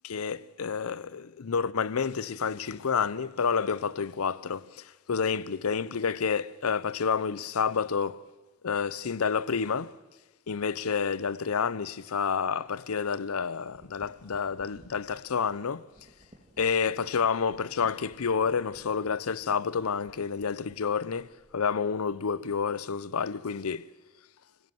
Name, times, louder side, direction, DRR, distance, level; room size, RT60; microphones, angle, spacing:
voice 1, 0.0-8.2 8.6-10.0 10.5-15.9 16.6-23.9, left 6 dB, 85° left, 0.6 m, -29 dB
sound 1, 12.7-12.9 13.4-21.8, right 1 dB, 35° right, 2.0 m, -58 dB
25.5 x 16.0 x 7.7 m
head